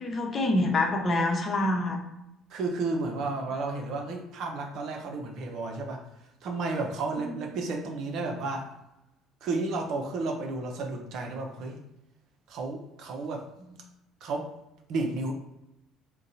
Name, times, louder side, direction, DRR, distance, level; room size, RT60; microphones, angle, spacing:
voice 1, 0.0-2.0 7.2-7.3, left 2 dB, 40° left, 2 dB, 0.9 m, -26 dB
voice 2, 2.5-6.0 6.4-8.7 9.4-11.8 12.5-13.4 14.2-14.5 14.9-15.3, right 3 dB, 55° right, 3 dB, 0.6 m, -32 dB
3.7 x 2.2 x 4.0 m, 0.88 s
figure-of-eight pair, 55°, 0 cm